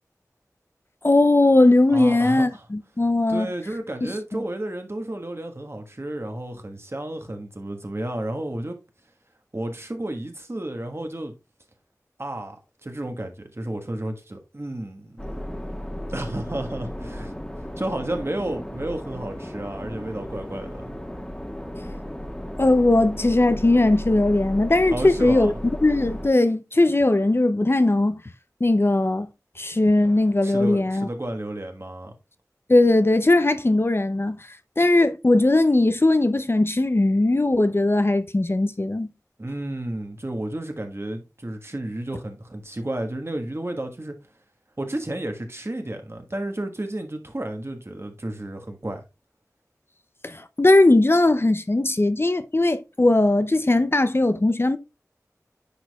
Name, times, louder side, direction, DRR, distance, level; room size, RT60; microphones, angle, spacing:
voice 1, 1.0-3.5 4.0-4.4 22.6-25.5 25.8-28.2 28.6-29.3 29.6-31.1 32.7-34.5 34.8-39.1 50.2-54.8, left 2 dB, 40° left, 0.5 m, -19 dB
voice 2, 1.9-2.7 3.3-8.8 9.5-11.3 12.2-15.3 16.1-17.3 17.6-21.0 24.9-25.6 30.4-32.1 39.4-44.2 44.8-49.0, right 1 dB, 45° right, 1.4 m, -32 dB
sound 1, 15.2-26.3, equal, 10° left, 1.3 m, -34 dB
10.0 x 4.8 x 2.3 m
wide cardioid pair, 45°, 6 cm